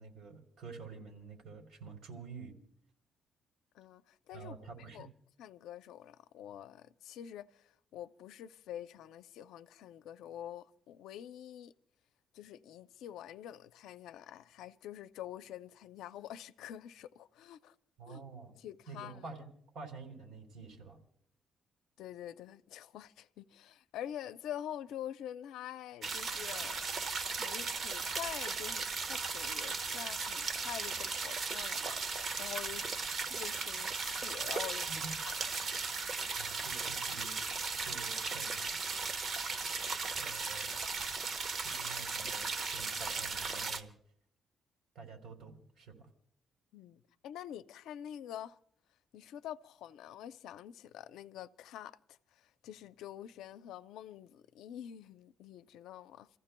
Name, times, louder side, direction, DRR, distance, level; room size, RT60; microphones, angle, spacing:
voice 1, 0.0-2.6 4.3-5.1 18.0-18.5 18.9-19.5 19.7-21.0 34.9-35.1 36.4-37.4 37.8-38.8 40.2-40.7 41.6-43.9 44.9-46.1, right 4 dB, 65° right, 3.3 m, -48 dB
voice 2, 3.7-5.1 5.4-11.7 12.3-17.8 18.1-18.2 18.6-19.2 22.0-26.9 27.4-32.0 32.4-34.9 35.2-35.4 46.7-48.6 49.1-56.3, left 11 dB, 85° left, 0.5 m, -46 dB
sound 1, 26.0-43.8, right 4 dB, 50° right, 1.1 m, -37 dB
29.5 x 15.0 x 2.2 m
cardioid pair, 90°, 0 cm